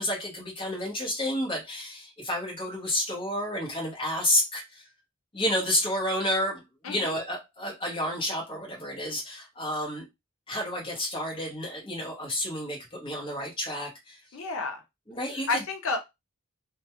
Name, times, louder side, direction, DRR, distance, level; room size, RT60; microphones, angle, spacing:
voice 1, 0.0-4.8 5.3-10.0 10.5-14.2 15.1-15.5, left 1 dB, 25° left, 0.8 m, -30 dB
voice 2, 14.3-14.8 15.5-16.0, left 3 dB, 80° left, 0.5 m, -30 dB
2.2 x 2.1 x 2.8 m
head